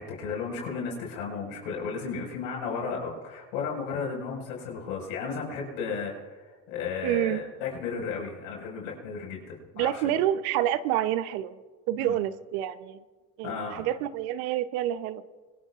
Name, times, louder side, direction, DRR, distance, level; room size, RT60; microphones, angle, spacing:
voice 1, 0.0-6.4 6.7-10.1 12.0-12.1 13.4-13.8, left 5 dB, 85° left, -1 dB, 5.5 m, -34 dB
voice 2, 7.0-7.4 9.7-11.6 11.9-13.0 13.4-15.2, right 12 dB, 80° right, 13 dB, 0.9 m, -28 dB
25.5 x 20.5 x 2.5 m, 1.3 s
supercardioid pair, 80°, 42 cm